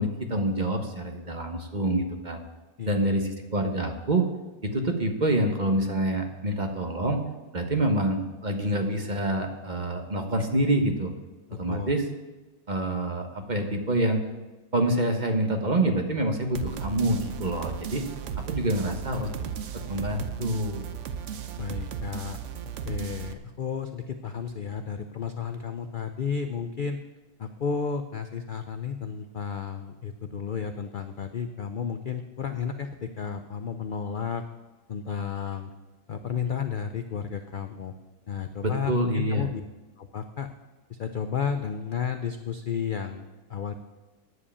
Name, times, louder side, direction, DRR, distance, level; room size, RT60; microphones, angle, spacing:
voice 1, 0.0-2.4 2.9-4.3 4.6-7.2 7.5-11.1 11.6-12.0 12.7-14.2 14.7-18.0 18.4-19.3 19.9-20.9 38.6-39.4, right 1 dB, 30° right, 5 dB, 1.2 m, -26 dB
voice 2, 2.8-3.1 11.5-11.9 21.6-22.4 22.8-27.0 27.4-34.4 34.9-35.7 36.1-37.9 38.3-39.6 40.0-40.5 40.9-43.8, left 6 dB, 70° left, 7 dB, 0.5 m, -32 dB
sound 1, 16.5-23.3, right 7 dB, 55° right, 0.9 m, -35 dB
9.7 x 7.5 x 8.5 m, 1.2 s
omnidirectional pair, 1.7 m